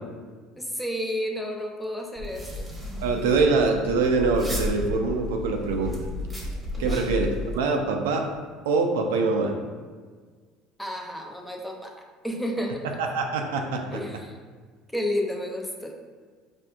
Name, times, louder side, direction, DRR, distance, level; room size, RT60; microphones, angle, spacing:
voice 1, 0.6-2.7 6.8-7.1 10.8-11.9 12.2-12.9 13.9-14.4 14.9-16.0, equal, 5° left, 2 dB, 0.5 m, -31 dB
sound 1, 2.2-7.6, left 1 dB, 15° right, 0.9 m, -33 dB
voice 2, 3.0-5.9 6.8-7.3 7.5-8.2 8.7-9.5 13.0-14.0, right 4 dB, 90° right, 3 dB, 0.4 m, -24 dB
4.3 x 2.5 x 2.3 m, 1.5 s
supercardioid pair, 90°, 0 cm